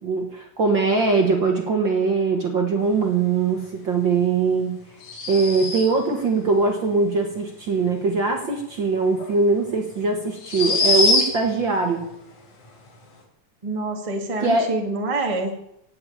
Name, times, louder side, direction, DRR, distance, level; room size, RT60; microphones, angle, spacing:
voice 1, 0.0-4.8 5.3-12.0 14.4-14.7, right 4 dB, 45° right, 2 dB, 1.9 m, -21 dB
sound 1, 5.0-6.1 9.2-9.3 10.4-11.6, left 2 dB, 60° left, 4.3 m, -22 dB
voice 2, 13.6-15.5, right 2 dB, 15° right, 2 dB, 1.4 m, -26 dB
17.0 x 7.0 x 9.0 m, 0.80 s
omnidirectional pair, 3.8 m